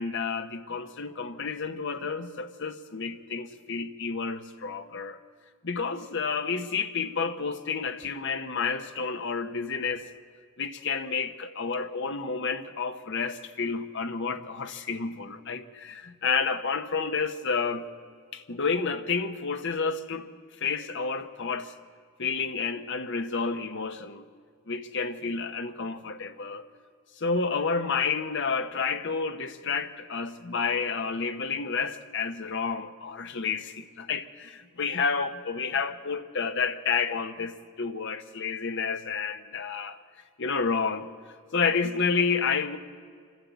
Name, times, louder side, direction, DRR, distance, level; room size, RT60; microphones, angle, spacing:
voice 1, 0.0-5.2 5.6-10.0 10.6-17.9 18.3-20.3 20.6-21.7 22.2-24.2 24.7-26.7 27.2-40.0 40.4-41.1 41.5-42.8, left 5 dB, 55° left, 1.0 m, -30 dB
26.0 x 12.5 x 8.2 m
head